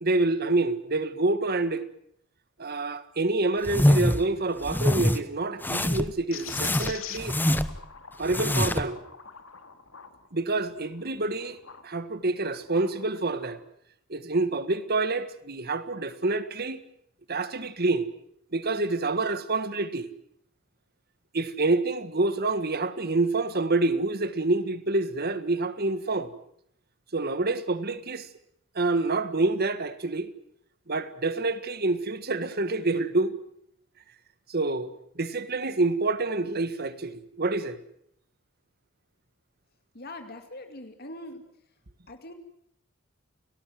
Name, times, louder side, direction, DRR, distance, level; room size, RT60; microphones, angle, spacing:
voice 1, 0.0-1.8 2.6-7.4 8.2-9.0 10.3-13.6 14.1-16.8 17.3-18.1 18.5-20.1 21.3-26.3 27.1-28.3 28.7-30.3 30.9-33.3 34.5-37.8, right 2 dB, 50° right, 1.6 m, -27 dB
sound 1, 3.6-4.2 4.6-5.2 5.6-6.1 6.5-7.8 8.2-8.9, left 1 dB, 10° left, 1.0 m, -24 dB
sound 2, 6.3-11.9 12.4-13.6, left 8 dB, 80° left, 2.3 m, -45 dB
voice 2, 39.9-41.7 42.1-42.3, left 1 dB, 50° left, 2.3 m, -42 dB
29.5 x 18.5 x 7.6 m
head